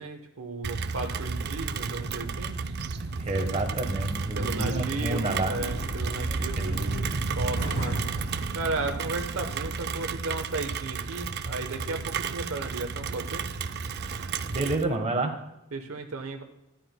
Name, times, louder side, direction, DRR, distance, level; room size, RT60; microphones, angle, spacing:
voice 1, 0.0-2.6 4.3-8.0 8.5-13.4 15.7-16.4, right 3 dB, 70° right, 5 dB, 1.0 m, -35 dB
Rain, 0.6-14.8, right 5 dB, 50° right, 0.4 m, -32 dB
sound 1, 0.7-14.9, left 1 dB, 40° left, 2.6 m, -44 dB
voice 2, 3.2-5.6 6.6-6.9 14.0-15.3, right 2 dB, 30° right, 3 dB, 1.2 m, -29 dB
13.0 x 11.5 x 2.2 m, 0.90 s
head